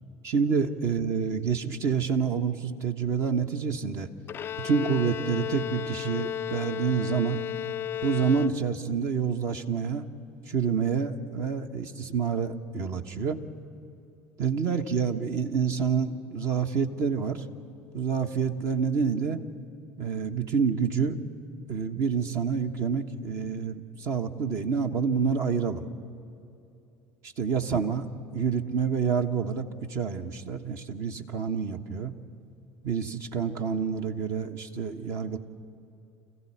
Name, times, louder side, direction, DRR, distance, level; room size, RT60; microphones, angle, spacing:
voice 1, 0.2-4.1 4.6-7.4 8.0-10.1 10.5-13.4 14.4-17.4 17.9-19.4 20.0-21.2 21.7-25.9 27.4-28.0 28.3-32.1 32.8-35.4, right 6 dB, 50° right, 6 dB, 1.3 m, -28 dB
Bowed string instrument, 4.3-9.0, left 10 dB, 35° left, 0.5 m, -34 dB
29.0 x 15.0 x 8.6 m, 2.7 s
figure-of-eight pair, 65°, 7 cm